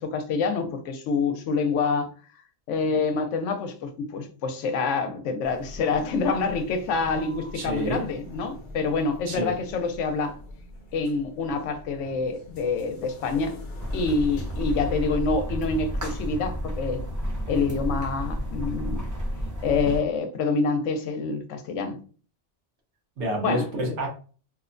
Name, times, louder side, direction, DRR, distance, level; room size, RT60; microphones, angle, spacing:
voice 1, 0.0-2.1 2.7-10.4 10.9-13.6 13.9-17.0 17.5-19.1 19.6-22.0 23.4-23.6, left 4 dB, 80° left, 0.9 m, -26 dB
sound 1, 5.4-14.9, left 1 dB, 55° left, 0.6 m, -43 dB
voice 2, 7.5-8.0 9.3-9.5 23.2-24.1, right 1 dB, 75° right, 1.1 m, -28 dB
sound 2, 13.8-20.0, equal, 30° right, 0.3 m, -31 dB
2.8 x 2.1 x 2.5 m
omnidirectional pair, 1.2 m